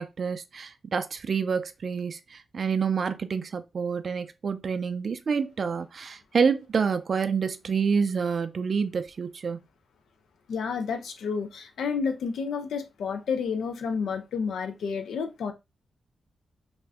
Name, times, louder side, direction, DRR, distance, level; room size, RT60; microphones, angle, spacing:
voice 1, 0.0-9.6, right 6 dB, 60° right, 0.3 m, -28 dB
voice 2, 10.5-15.5, left 5 dB, 85° left, 0.5 m, -30 dB
2.4 x 2.2 x 3.5 m
cardioid pair, 65°, 0 cm